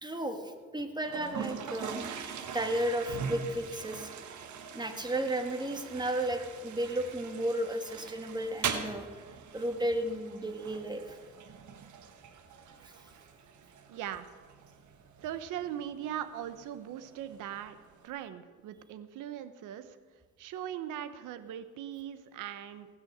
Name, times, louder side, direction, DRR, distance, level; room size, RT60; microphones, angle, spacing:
voice 1, 0.0-4.1 4.7-9.1 9.5-11.2 12.8-12.9, right 1 dB, 15° right, 6 dB, 1.7 m, -34 dB
Toilet flush, 1.0-18.1, right 6 dB, 75° right, 1.4 m, -42 dB
voice 2, 13.9-14.3 15.2-17.7 18.0-19.9 20.4-22.9, right 10 dB, 90° right, 11 dB, 1.0 m, -39 dB
18.5 x 6.2 x 8.0 m, 1.4 s
cardioid pair, 90°, 30 cm